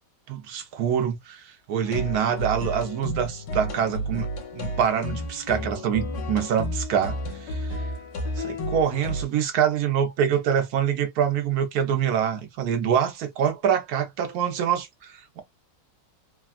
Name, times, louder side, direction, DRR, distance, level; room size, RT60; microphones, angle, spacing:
voice 1, 0.3-4.3 4.5-7.8 8.4-15.4, right 8 dB, 65° right, 1.1 m, -25 dB
sound 1, 1.8-9.2, equal, 70° left, 1.6 m, -32 dB
3.5 x 2.2 x 2.3 m
omnidirectional pair, 1.9 m